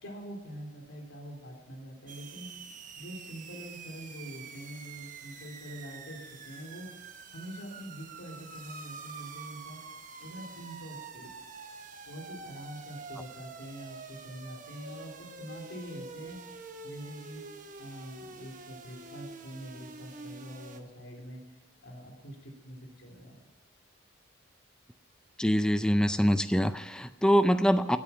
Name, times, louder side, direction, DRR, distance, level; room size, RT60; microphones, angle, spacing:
voice 1, 0.0-2.5 3.0-6.2 6.4-9.8 10.2-11.3 12.0-17.5 17.8-21.4 21.8-23.4, right 1 dB, 90° left, 1 dB, 3.5 m, -45 dB
sound 1, 2.1-20.8, right 4 dB, 40° right, 1.0 m, -46 dB
voice 2, 25.4-28.0, equal, 5° left, 11 dB, 0.4 m, -24 dB
13.0 x 8.7 x 7.1 m, 1.3 s
head